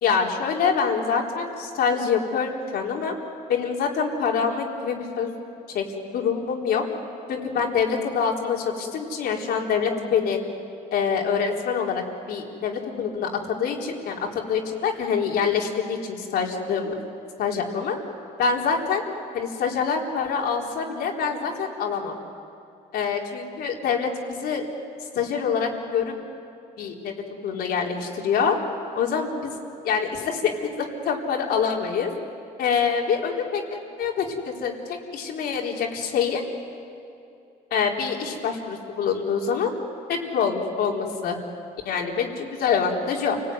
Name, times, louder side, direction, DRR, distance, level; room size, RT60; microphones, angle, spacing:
voice 1, 0.0-3.1 3.5-5.3 5.7-5.9 6.1-6.8 7.3-10.4 10.9-13.3 13.6-16.9 17.4-18.0 18.4-19.0 19.3-22.1 22.9-24.7 25.1-26.1 26.8-27.1 27.4-28.6 29.0-29.6 29.8-30.5 30.8-32.1 32.6-36.4 37.7-39.7 40.1-41.4 41.8-43.4, left 6 dB, 70° left, -1 dB, 4.2 m, -25 dB
29.5 x 19.5 x 9.5 m, 2.7 s
cardioid pair, 110°, 17 cm